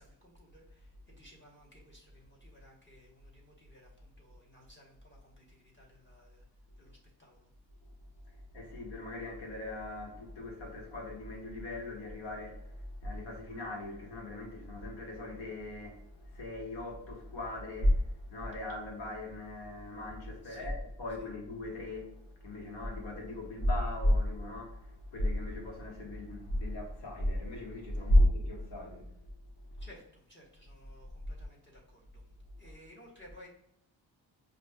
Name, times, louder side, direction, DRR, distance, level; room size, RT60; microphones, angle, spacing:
voice 1, 0.0-6.5 6.8-7.5 20.4-20.7 21.2-21.3 29.8-32.3 32.6-33.5, equal, 25° left, 1.2 m, -58 dB
voice 2, 8.3-29.1, left 1 dB, 75° left, 1.4 m, -34 dB
5.1 x 2.5 x 2.2 m
cardioid pair, 75°, 45 cm